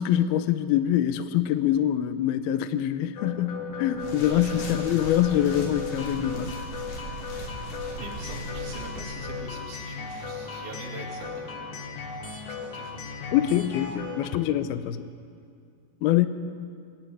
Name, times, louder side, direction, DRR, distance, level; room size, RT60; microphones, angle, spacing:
voice 1, 0.0-6.5 13.3-15.1 16.0-16.3, left 11 dB, 90° left, 12 dB, 2.2 m, -24 dB
sound 1, 3.2-14.3, left 4 dB, 50° left, 1.9 m, -36 dB
sound 2, 3.9-9.1, right 1 dB, 70° left, 5.2 m, -39 dB
voice 2, 4.3-5.2 8.0-11.9 12.5-13.0, right 4 dB, 60° right, -2 dB, 4.1 m, -43 dB
25.0 x 11.0 x 9.7 m, 2.3 s
omnidirectional pair, 5.3 m